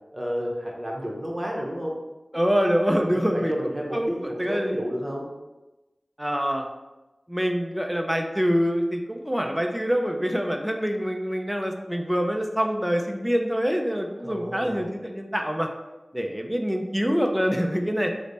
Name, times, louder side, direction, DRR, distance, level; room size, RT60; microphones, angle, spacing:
voice 1, 0.1-2.0 3.0-5.3 14.2-14.9, equal, 25° right, -1 dB, 0.8 m, -31 dB
voice 2, 2.3-3.5 3.9-4.1 4.4-4.8 6.2-6.6 7.3-15.7 16.1-18.1, equal, 10° right, 3 dB, 0.4 m, -25 dB
3.2 x 2.1 x 3.9 m, 1.1 s
wide cardioid pair, 45°, 0 cm